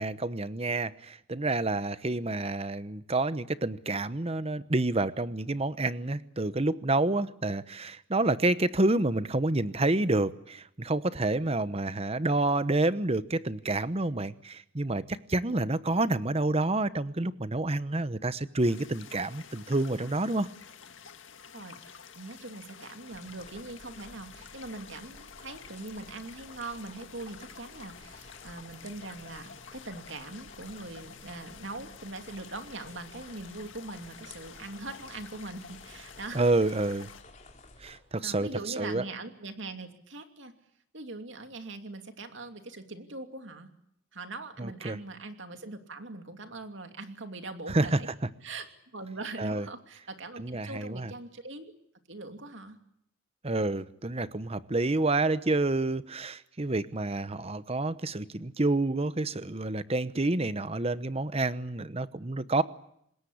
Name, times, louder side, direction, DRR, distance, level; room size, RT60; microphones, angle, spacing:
voice 1, 0.0-20.5 36.3-37.1 37.8-38.5 38.8-39.0 44.6-45.0 47.7-48.0 49.4-49.7 50.4-51.1 53.4-62.6, right 2 dB, 30° right, 14 dB, 1.0 m, -28 dB
sound 1, 18.6-37.2, left 7 dB, 70° left, 1.8 m, -50 dB
voice 2, 21.5-36.5 38.2-40.5 40.9-43.7 44.1-48.1 48.4-51.7 52.1-52.8, right 2 dB, 65° right, 6 dB, 2.7 m, -42 dB
sound 2, 23.1-38.0, left 3 dB, 35° left, 3.6 m, -53 dB
26.0 x 21.0 x 8.6 m, 0.75 s
head